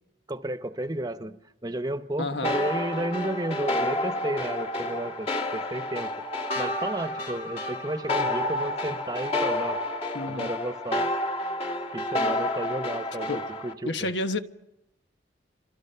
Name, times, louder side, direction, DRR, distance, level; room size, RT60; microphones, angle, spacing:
voice 1, 0.3-6.1 6.5-9.8 10.2-11.1 11.9-14.1, right 1 dB, 20° right, 1.0 m, -32 dB
voice 2, 2.2-2.5 10.1-10.5 13.3-13.4 13.8-14.4, left 2 dB, 75° left, 1.4 m, -29 dB
sound 1, 2.4-13.7, left 1 dB, 35° left, 1.9 m, -30 dB
28.0 x 26.0 x 5.7 m
head